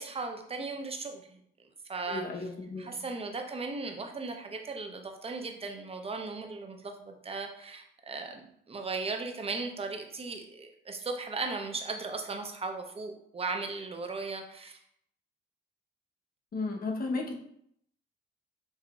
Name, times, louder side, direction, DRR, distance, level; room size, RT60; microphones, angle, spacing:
voice 1, 0.0-1.4 1.9-2.2 2.8-14.8, right 3 dB, 30° right, 4 dB, 0.7 m, -37 dB
voice 2, 2.1-3.0 16.5-17.4, left 3 dB, 45° left, 1 dB, 0.9 m, -34 dB
5.8 x 2.7 x 2.3 m, 0.71 s
cardioid pair, 90°, 20 cm